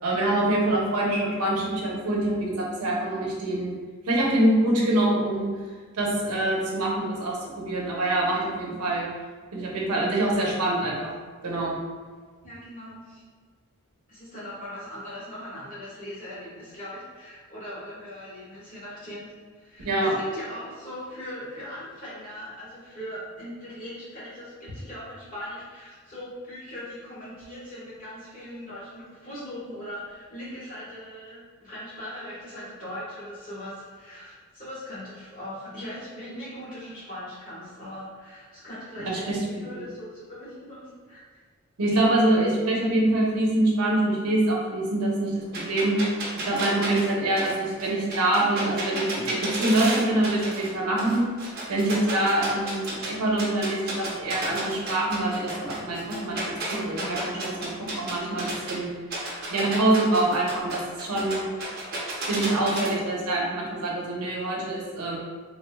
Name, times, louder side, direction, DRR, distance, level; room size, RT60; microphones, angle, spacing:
voice 1, 0.0-3.8 4.1-5.5 5.9-9.1 9.5-11.1 11.4-11.8 19.8-20.1 39.1-39.9 41.8-46.0 46.3-51.3 51.7-58.9 59.5-61.5 62.3-65.2, right 1 dB, 90° right, -3 dB, 0.8 m, -25 dB
voice 2, 12.4-13.2 14.1-41.2 59.3-59.8, equal, 40° left, -9 dB, 1.4 m, -40 dB
sound 1, 45.5-50.7 51.0-53.1 53.4-58.7 59.1-62.9, right 2 dB, 45° right, 0.7 m, -32 dB
3.6 x 3.0 x 2.2 m, 1.5 s
head